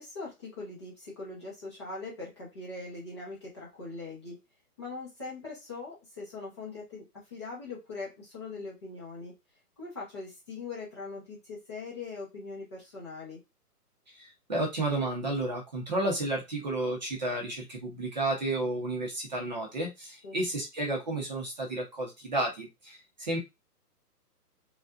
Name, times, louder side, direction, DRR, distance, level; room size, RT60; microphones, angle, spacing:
voice 1, 0.0-4.4 4.8-9.4 9.8-13.4 20.2-20.4, left 3 dB, 15° left, -6 dB, 0.8 m, -41 dB
voice 2, 14.2-23.4, right 2 dB, 30° right, -1 dB, 0.9 m, -32 dB
5.1 x 2.5 x 2.4 m, 0.22 s
hypercardioid pair, 170°, 47 cm